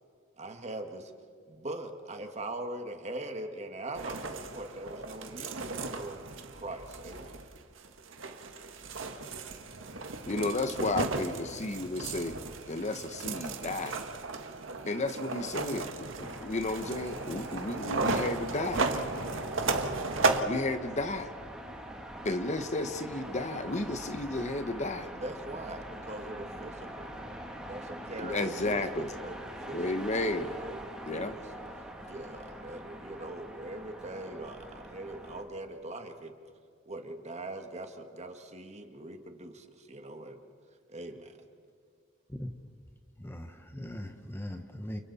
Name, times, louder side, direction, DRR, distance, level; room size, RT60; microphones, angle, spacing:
voice 1, 0.4-1.1 1.5-6.2 6.5-7.4 25.0-27.1 27.7-29.8 30.1-31.5 32.1-36.3 36.9-40.4 40.9-41.4, right 1 dB, 35° right, 5 dB, 1.9 m, -42 dB
sound 1, 3.9-20.4, right 3 dB, 85° right, 1.6 m, -35 dB
voice 2, 10.3-12.3 12.7-14.0 14.9-15.9 16.2-18.8 20.5-21.3 22.2-25.1 28.2-29.1 29.7-30.5 31.1-31.4, left 2 dB, 35° left, 9 dB, 1.0 m, -33 dB
sound 2, 16.2-35.4, right 1 dB, 5° right, 2.7 m, -44 dB
voice 3, 43.2-45.0, equal, 10° left, 6 dB, 1.1 m, -40 dB
29.5 x 29.0 x 4.2 m, 2.1 s
head